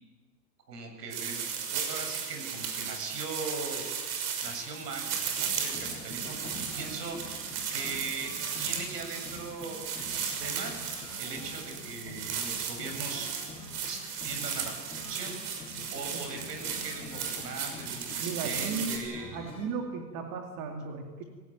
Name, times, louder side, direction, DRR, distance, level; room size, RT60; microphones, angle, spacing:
voice 1, 0.7-3.8 4.4-5.1 5.4-6.4 6.7-7.2 7.7-8.3 8.6-10.8 11.2-13.3 13.9-14.7 15.1-15.3 15.9-19.4, right 4 dB, 85° right, 5 dB, 7.7 m, -39 dB
sound 1, 1.1-19.0, right 7 dB, 65° right, 5.9 m, -36 dB
sound 2, 4.5-19.7, left 3 dB, 10° left, 7.2 m, -47 dB
voice 2, 18.2-19.0 19.3-21.2, right 5 dB, 45° right, 3 dB, 3.1 m, -36 dB
28.0 x 18.0 x 9.1 m, 1.4 s
hypercardioid pair, 120°, 47 cm